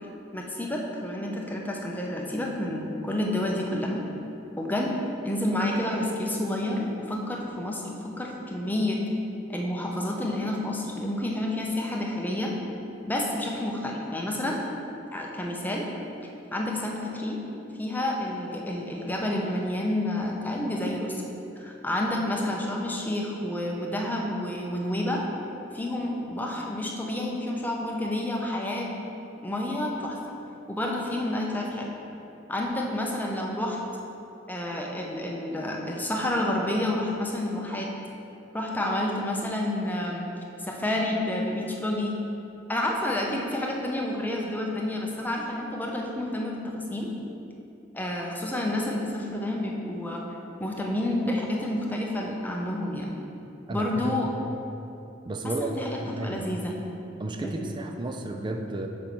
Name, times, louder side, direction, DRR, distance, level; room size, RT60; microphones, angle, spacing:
voice 1, 0.0-4.0 4.6-5.0 5.2-9.0 9.5-12.5 13.1-14.6 15.1-15.9 16.5-17.4 17.8-21.3 21.6-25.3 25.7-28.9 29.4-30.2 30.7-31.9 32.5-33.8 34.5-37.9 38.5-40.2 40.6-42.2 42.7-47.1 47.9-50.2 50.6-53.1 53.7-54.3 55.4-56.8 57.4-57.6, left 1 dB, 10° left, -1 dB, 0.6 m, -29 dB
voice 2, 53.7-54.5 55.3-56.5 57.2-58.9, right 2 dB, 25° right, 4 dB, 0.4 m, -33 dB
5.2 x 4.3 x 6.0 m, 2.8 s
head